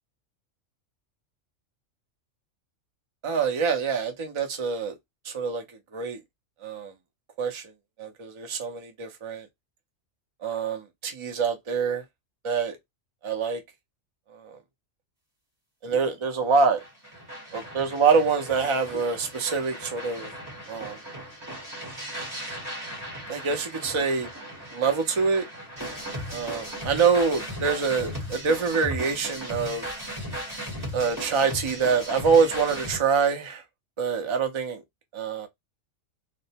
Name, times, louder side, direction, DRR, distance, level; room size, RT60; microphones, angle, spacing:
voice 1, 3.2-4.9 5.2-5.6 5.9-6.2 6.6-6.9 7.4-7.7 8.0-9.5 10.4-12.0 12.4-12.8 13.2-13.6 14.3-14.6 15.8-16.8 17.5-20.3 20.7-21.0 23.3-24.3 24.7-25.4 26.3-29.8 30.9-33.6 34.0-34.8 35.1-35.5, right 5 dB, 40° right, 0.4 m, -25 dB
sound 1, 16.8-33.0, equal, 15° right, 1.0 m, -37 dB
2.5 x 2.1 x 2.8 m
omnidirectional pair, 1.4 m